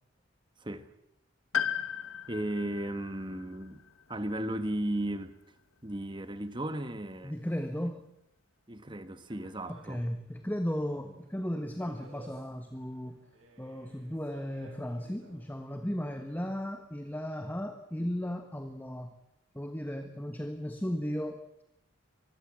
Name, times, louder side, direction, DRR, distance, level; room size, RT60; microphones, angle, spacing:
voice 1, 0.6-0.9 2.3-3.8 4.1-5.4 5.8-7.4 8.7-10.0, right 1 dB, 25° right, 1.4 m, -35 dB
Piano, 1.5-5.4 5.7-5.8 6.9-7.0, left 9 dB, 80° left, 1.2 m, -37 dB
voice 2, 7.2-8.0 9.7-13.2 13.6-19.1 19.5-21.6, equal, 10° left, 1.3 m, -35 dB
sound 1, 9.3-15.4, right 2 dB, 75° right, 7.9 m, -58 dB
25.0 x 21.0 x 7.5 m
head